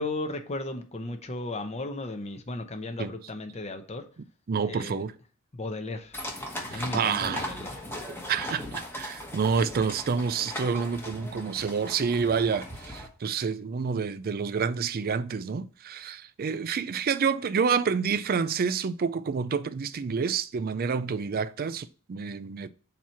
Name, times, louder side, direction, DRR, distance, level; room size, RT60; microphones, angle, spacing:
voice 1, 0.0-4.0 4.6-5.0 5.5-6.2 6.7-7.8, left 2 dB, 30° left, 0.8 m, -35 dB
voice 2, 4.5-5.1 6.7-7.5 8.1-22.7, right 6 dB, 45° right, 0.4 m, -28 dB
sound 1, 6.1-13.1, left 1 dB, 10° left, 1.1 m, -38 dB
7.3 x 2.9 x 5.7 m
head